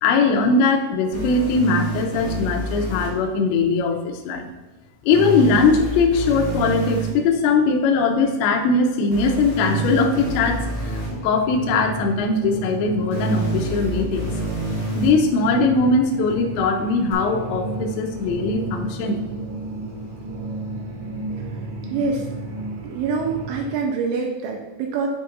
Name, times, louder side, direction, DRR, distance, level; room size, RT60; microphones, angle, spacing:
voice 1, 0.0-4.5 5.0-14.3 15.0-19.2, left 4 dB, 80° left, 3 dB, 2.6 m, -20 dB
sound 1, 1.1-3.1 5.1-7.1 9.1-11.1 13.1-15.1 17.1-17.2, right 2 dB, 55° left, 1.6 m, -28 dB
sound 2, 9.7-23.8, right 2 dB, 65° right, 3.0 m, -32 dB
voice 2, 21.9-22.3 22.8-25.1, right 4 dB, 85° right, 1 dB, 2.9 m, -25 dB
8.4 x 5.6 x 2.6 m, 1.1 s
omnidirectional pair, 5.9 m